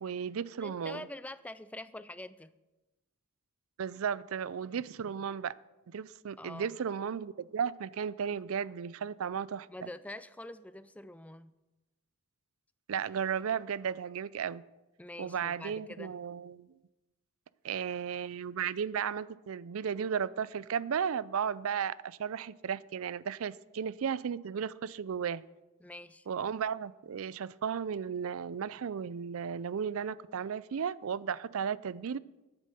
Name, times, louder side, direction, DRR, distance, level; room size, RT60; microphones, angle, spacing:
voice 1, 0.0-1.1 3.8-5.5 5.9-9.9 12.9-14.6 15.2-16.7 17.6-25.4 26.3-32.2, right 7 dB, 75° right, 20 dB, 0.4 m, -34 dB
voice 2, 0.6-2.5 6.4-6.7 9.7-11.5 15.0-16.1 25.8-26.3, left 1 dB, 5° left, 14 dB, 0.3 m, -45 dB
9.9 x 9.0 x 6.8 m, 1.1 s
head